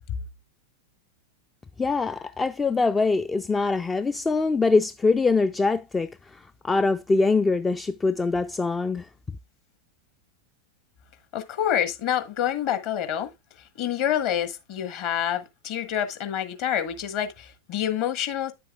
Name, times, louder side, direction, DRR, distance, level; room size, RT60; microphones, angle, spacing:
voice 1, 1.8-9.1, left 3 dB, 15° left, 0.3 m, -23 dB
voice 2, 11.3-13.3 13.8-18.5, left 10 dB, 45° left, 1.4 m, -27 dB
10.0 x 7.5 x 2.3 m
figure-of-eight pair, 90°, 0 cm